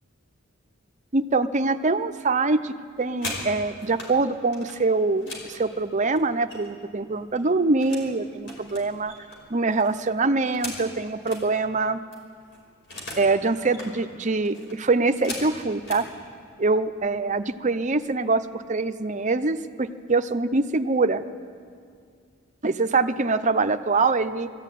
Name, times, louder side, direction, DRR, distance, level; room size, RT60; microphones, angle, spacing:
voice 1, 1.1-9.1 9.5-12.0 13.2-16.0 16.6-21.2 22.6-24.5, right 3 dB, 35° right, 9 dB, 0.7 m, -24 dB
sound 1, 2.8-4.1 4.5-6.9 7.2-8.1 8.4-11.4 11.8-11.9 12.1-13.3 13.6-13.9 14.4-16.1 16.9-17.1 17.4-17.7 18.0-18.5, left 2 dB, 60° left, 5.0 m, -39 dB
21.0 x 14.5 x 9.2 m, 2.2 s
head